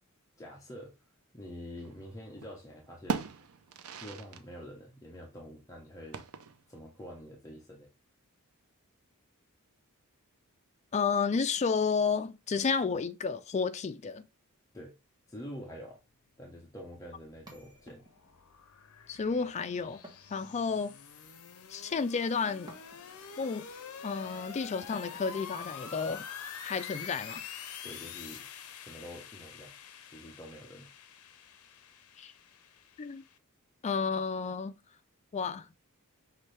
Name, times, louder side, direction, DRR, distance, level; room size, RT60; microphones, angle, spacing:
voice 1, 0.4-0.9 1.3-3.3 4.0-6.2 6.7-7.9 14.7-14.9 15.3-16.0 16.4-18.0 27.8-28.5 28.8-29.7 30.1-30.9, equal, 15° left, 0.8 m, -46 dB
sound 1, 1.8-2.6 2.8-4.5 4.7-4.8 6.1-6.8, right 5 dB, 70° right, 0.5 m, -38 dB
voice 2, 10.9-14.2 19.1-20.0 20.3-20.9 21.7-22.7 23.4-23.7 24.0-26.2 26.6-27.4 32.2-32.3 33.0-33.2 33.8-34.8 35.3-35.7, left 5 dB, 30° left, 0.4 m, -31 dB
sound 2, 17.4-33.4, left 7 dB, 75° left, 0.6 m, -47 dB
sound 3, 17.5-18.4 20.0-21.0 22.7-23.3 24.9-25.5, right 1 dB, 20° right, 1.2 m, -54 dB
5.8 x 2.6 x 3.2 m
head